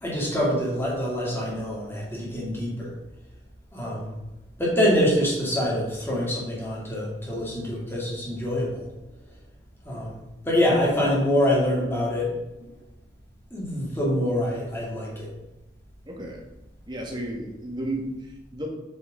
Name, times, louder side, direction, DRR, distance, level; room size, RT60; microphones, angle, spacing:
voice 1, 0.0-2.9 3.7-4.2 4.6-8.9 9.8-12.3 12.6-12.7 13.5-15.3, equal, 15° left, -5 dB, 2.7 m, -25 dB
voice 2, 16.1-16.4 16.9-18.7, right 1 dB, 25° right, 0 dB, 1.6 m, -33 dB
7.8 x 6.5 x 3.8 m, 1.0 s
head